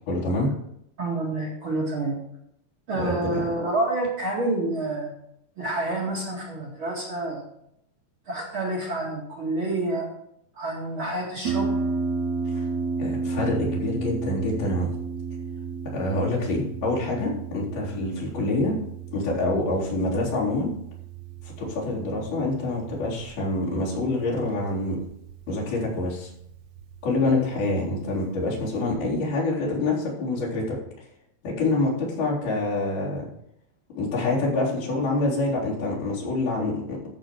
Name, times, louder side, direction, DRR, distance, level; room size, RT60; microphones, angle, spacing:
voice 1, 0.1-0.5 2.9-3.4 12.5-12.6 13.0-14.9 15.9-18.8 19.1-20.7 21.6-25.0 25.5-26.3 27.0-30.8 31.4-33.3 34.0-37.0, left 2 dB, 80° left, -6 dB, 5.7 m, -26 dB
voice 2, 1.0-2.2 2.9-5.1 5.6-7.5 8.3-10.1 10.6-11.7, right 2 dB, 40° right, -3 dB, 2.4 m, -28 dB
Harp, 11.4-28.9, right 4 dB, 65° right, 1.9 m, -33 dB
14.0 x 7.0 x 4.6 m, 0.76 s
omnidirectional pair, 4.3 m